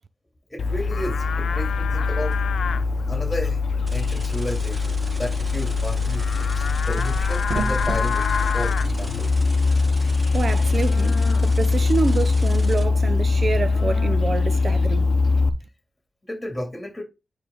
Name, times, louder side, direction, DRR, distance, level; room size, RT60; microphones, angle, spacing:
voice 1, 0.5-2.4 3.1-3.6 3.9-9.3 16.3-17.0, left 1 dB, 10° left, 2.7 m, -32 dB
Livestock farm animals working animals, 0.6-15.5, left 4 dB, 75° left, 0.7 m, -22 dB
sound 1, 2.3-2.4 5.8-6.1 6.6-8.0, right 4 dB, 70° right, 1.3 m, -32 dB
sound 2, 3.9-12.8, right 1 dB, 30° right, 2.0 m, -41 dB
voice 2, 10.3-15.1, right 4 dB, 50° right, 0.7 m, -27 dB
8.9 x 3.3 x 3.9 m
cardioid pair, 75°, 0 cm